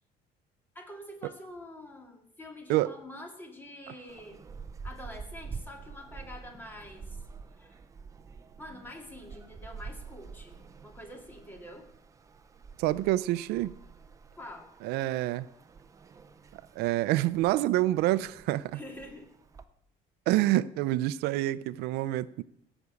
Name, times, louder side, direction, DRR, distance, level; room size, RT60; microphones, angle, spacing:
voice 1, 0.7-4.4 4.8-7.2 7.6-7.8 8.6-10.6 10.8-11.9 14.3-14.7 18.7-19.4, left 1 dB, 10° left, 2.1 m, -46 dB
sound 1, 4.1-19.6, right 5 dB, 20° right, 0.6 m, -48 dB
voice 2, 12.8-13.7 14.8-15.5 16.8-18.8 20.3-22.4, right 16 dB, 85° right, 0.5 m, -27 dB
16.5 x 6.1 x 8.2 m
cardioid pair, 170°, 16 cm